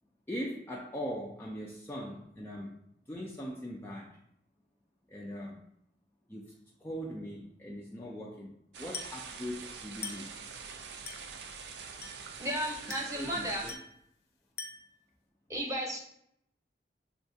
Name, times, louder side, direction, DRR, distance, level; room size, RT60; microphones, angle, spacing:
voice 1, 0.3-2.7 3.1-4.2 5.1-5.6 6.3-6.5 6.8-10.4 12.9-13.7, equal, 15° left, -2 dB, 0.3 m, -40 dB
sound 1, 8.7-13.7, right 5 dB, 75° right, 0.4 m, -45 dB
Glass, 8.9-9.3 10.0-10.4 11.1-11.4 12.0-12.4 12.9-13.3 13.7-14.0 14.6-15.0, left 4 dB, 65° left, 0.6 m, -43 dB
voice 2, 12.4-13.6 15.5-16.0, equal, 15° right, -1 dB, 0.8 m, -34 dB
6.9 x 2.3 x 2.6 m, 0.74 s
head